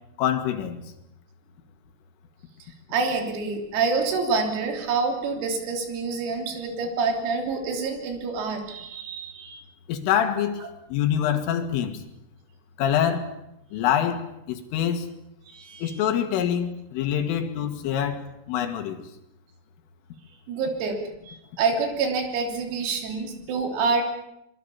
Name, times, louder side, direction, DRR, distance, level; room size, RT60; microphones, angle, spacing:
voice 1, 0.2-0.8 9.9-10.6 10.9-12.0 12.8-13.3 13.7-14.2 14.5-15.1 15.8-19.0, left 9 dB, 75° left, 7 dB, 4.3 m, -25 dB
voice 2, 2.9-9.6 15.5-16.0 20.5-24.0, right 4 dB, 90° right, 3 dB, 6.2 m, -27 dB
25.0 x 22.5 x 7.1 m, 0.82 s
omnidirectional pair, 6.0 m